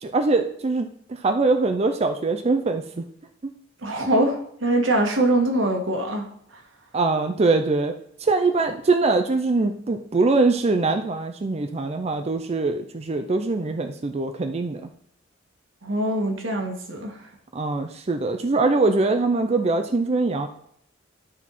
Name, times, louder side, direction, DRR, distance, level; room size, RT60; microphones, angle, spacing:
voice 1, 0.0-3.0 3.4-3.5 6.9-7.9 8.2-14.9 17.5-20.5, right 3 dB, 35° right, 6 dB, 0.5 m, -23 dB
voice 2, 3.8-6.3 15.8-17.2, right 1 dB, 85° right, 2 dB, 1.6 m, -23 dB
12.0 x 4.5 x 4.2 m, 0.70 s
head